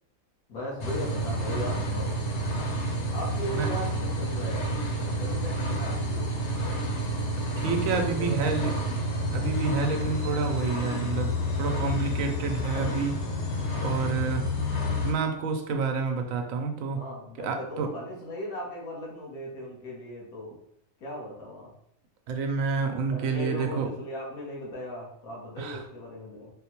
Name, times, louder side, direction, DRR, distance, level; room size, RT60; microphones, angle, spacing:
voice 1, 0.5-2.2 3.1-4.7 5.2-6.3 7.9-8.8 16.9-20.5 21.0-21.7 23.1-26.5, left 1 dB, 90° left, -4 dB, 1.5 m, -38 dB
sound 1, 0.8-15.1, equal, 60° left, 0.9 m, -29 dB
voice 2, 7.5-8.7 9.3-13.2 13.8-14.5 15.0-17.0 17.4-17.9 22.3-23.9 25.6-25.8, right 5 dB, 75° right, 4 dB, 0.9 m, -29 dB
4.1 x 2.1 x 2.9 m, 0.70 s
omnidirectional pair, 1.5 m